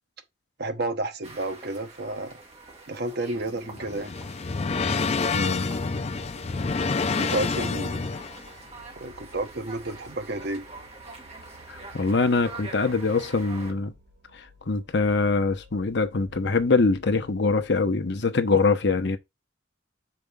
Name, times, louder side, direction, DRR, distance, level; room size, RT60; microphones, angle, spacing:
voice 1, 0.6-2.4 2.9-4.1 7.2-8.0 9.0-10.7, right 2 dB, 55° right, 1.0 m, -31 dB
sound 1, 1.2-13.7, right 3 dB, 35° right, 1.7 m, -45 dB
sound 2, 3.4-17.8, left 3 dB, 75° right, 2.9 m, -56 dB
sound 3, 3.5-8.5, left 4 dB, 35° left, 0.4 m, -28 dB
voice 2, 5.3-5.7 11.7-13.9 14.3-19.2, left 3 dB, 60° left, 0.9 m, -24 dB
6.8 x 5.2 x 3.6 m
head